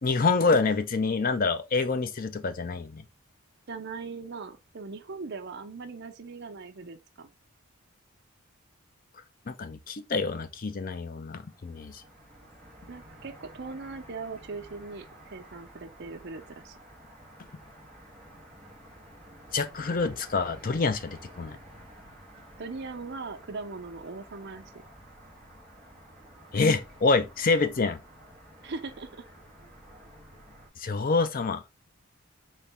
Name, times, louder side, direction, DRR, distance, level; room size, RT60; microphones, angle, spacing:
voice 1, 0.0-3.0 9.5-12.0 19.5-21.6 26.5-28.0 30.8-31.6, left 4 dB, 40° left, 0.5 m, -26 dB
voice 2, 3.7-7.3 12.9-16.7 22.6-24.7 28.6-29.2, right 4 dB, 50° right, 0.6 m, -40 dB
sound 1, 11.4-30.7, right 1 dB, 5° left, 1.3 m, -51 dB
4.2 x 3.0 x 3.3 m
head